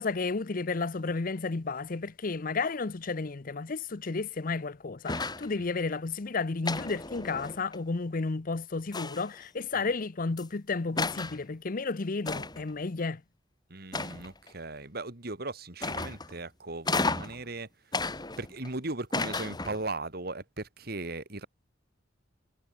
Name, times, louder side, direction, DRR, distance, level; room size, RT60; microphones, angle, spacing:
voice 1, 0.0-13.2, left 4 dB, 50° left, 0.7 m, -32 dB
sound 1, 5.1-5.5 6.6-7.8 8.9-9.4 10.4-10.5 11.0-11.4 12.3-12.7 13.9-14.5 15.8-16.4 16.9-17.4 17.9-18.7 19.1-19.9, left 3 dB, 25° left, 3.1 m, -33 dB
voice 2, 13.7-17.7 18.4-21.5, right 2 dB, 55° right, 2.6 m, -38 dB
head